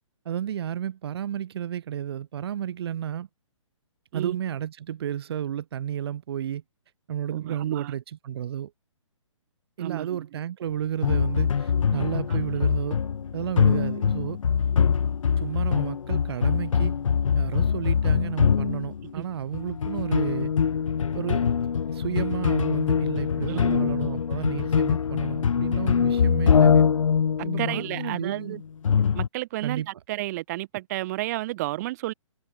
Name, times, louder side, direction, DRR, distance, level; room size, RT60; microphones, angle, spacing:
voice 1, 0.3-3.3 4.1-6.6 7.1-8.7 9.8-13.0 13.3-14.4 15.4-17.0 17.3-20.5 21.1-21.4 21.9-26.8 27.4-28.6 29.6-29.9, right 10 dB, 50° right, 2.3 m, -32 dB
voice 2, 7.3-7.9 9.8-10.3 12.3-12.4 19.2-19.3 23.5-23.9 27.4-28.6 29.1-32.1, right 17 dB, 30° right, 0.8 m, -32 dB
sound 1, 11.0-19.2 19.5-29.3, left 7 dB, 75° left, 0.6 m, -23 dB
hypercardioid pair, 140°, 17 cm